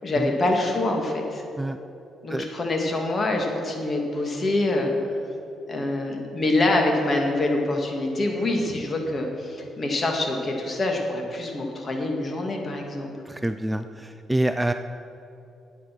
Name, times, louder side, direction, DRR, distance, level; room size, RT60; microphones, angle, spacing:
voice 1, 0.0-1.4 2.2-4.9 5.7-13.1, left 2 dB, 35° left, 2 dB, 2.1 m, -25 dB
voice 2, 13.3-14.7, right 1 dB, 10° right, 9 dB, 0.4 m, -26 dB
11.5 x 8.6 x 6.0 m, 2.8 s
cardioid pair, 90°, 0 cm